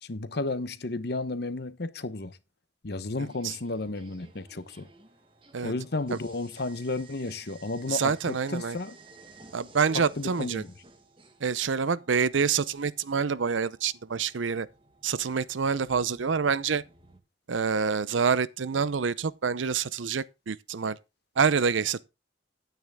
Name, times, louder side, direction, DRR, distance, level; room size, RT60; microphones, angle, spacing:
voice 1, 0.0-2.4 2.8-4.9 5.6-9.0 9.9-10.7, left 2 dB, 55° left, 0.9 m, -33 dB
sound 1, 3.2-17.2, right 3 dB, 30° right, 1.5 m, -55 dB
voice 2, 7.9-8.8 9.5-10.6 11.4-14.7 15.0-16.8 17.5-21.0 21.4-22.0, right 6 dB, 85° right, 0.6 m, -27 dB
10.5 x 9.3 x 3.5 m
head